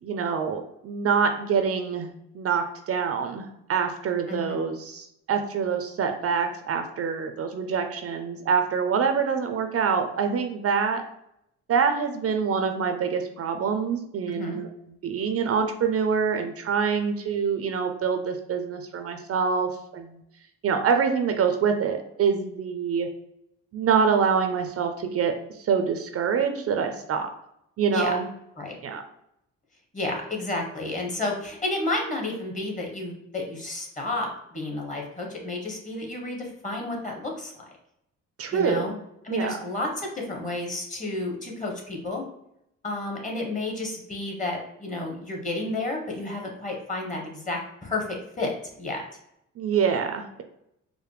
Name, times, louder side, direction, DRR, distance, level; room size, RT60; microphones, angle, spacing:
voice 1, 0.0-11.0 11.7-14.7 15.0-20.2 20.6-23.1 23.7-27.3 27.8-28.2 28.8-29.0 38.4-38.9 39.3-39.6 49.6-50.4, right 6 dB, 50° right, 6 dB, 0.5 m, -25 dB
voice 2, 4.3-4.6 14.3-14.6 27.9-28.2 28.6-28.7 29.9-37.7 38.5-38.9 39.2-42.2 42.8-49.0, left 2 dB, 25° left, 0 dB, 1.2 m, -31 dB
4.8 x 2.1 x 3.3 m, 0.79 s
cardioid pair, 90°, 30 cm